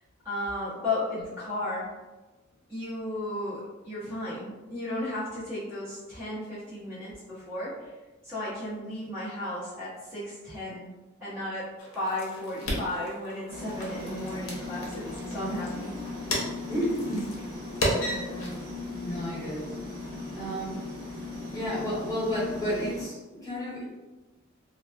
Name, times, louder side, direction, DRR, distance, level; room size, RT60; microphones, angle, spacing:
voice 1, 0.2-1.9 2.7-7.7 8.2-10.9 11.2-15.9 18.0-18.4, left 1 dB, 10° right, -10 dB, 0.7 m, -34 dB
sound 1, 11.8-18.8, equal, 85° left, 0.7 m, -35 dB
sound 2, 13.5-23.1, left 2 dB, 50° right, 0.8 m, -38 dB
voice 2, 16.7-17.2 19.0-19.7 20.3-20.8 21.5-23.8, equal, 15° left, -9 dB, 0.9 m, -31 dB
2.8 x 2.2 x 2.3 m, 1.2 s
head